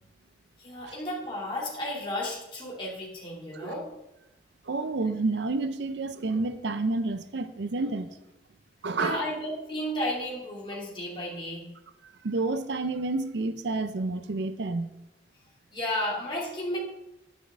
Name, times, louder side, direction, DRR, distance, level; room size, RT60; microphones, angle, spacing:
voice 1, 0.6-3.9 9.0-11.6 15.7-16.8, left 1 dB, 25° left, 2.7 m, -33 dB
voice 2, 4.6-8.1 8.8-9.2 12.2-14.9, right 3 dB, 70° right, 0.5 m, -29 dB
9.5 x 8.9 x 3.7 m
head